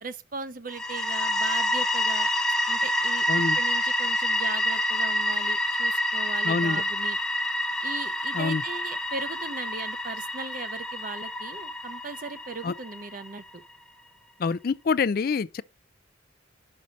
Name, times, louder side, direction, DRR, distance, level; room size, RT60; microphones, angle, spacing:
voice 1, 0.0-2.3 2.7-3.3 3.5-7.2 7.8-13.6, right 3 dB, 45° right, 0.7 m, -38 dB
sound 1, 0.7-13.4, left 1 dB, 5° left, 0.6 m, -28 dB
voice 2, 6.4-6.8 8.3-8.6 12.6-12.7 14.4-15.6, left 5 dB, 45° left, 0.4 m, -26 dB
6.4 x 5.5 x 4.0 m
head